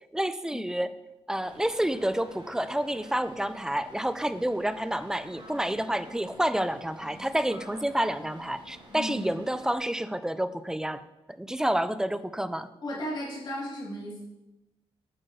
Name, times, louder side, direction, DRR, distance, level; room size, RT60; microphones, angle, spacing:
voice 1, 0.1-0.9 1.3-11.0 11.4-12.7, right 1 dB, 5° right, 13 dB, 0.3 m, -29 dB
sound 1, 1.4-9.8, right 1 dB, 45° right, 1.6 m, -50 dB
voice 2, 8.9-9.2 12.8-14.2, equal, 45° left, -6 dB, 2.0 m, -35 dB
8.9 x 4.5 x 4.5 m, 1.0 s
wide cardioid pair, 135°, 10 cm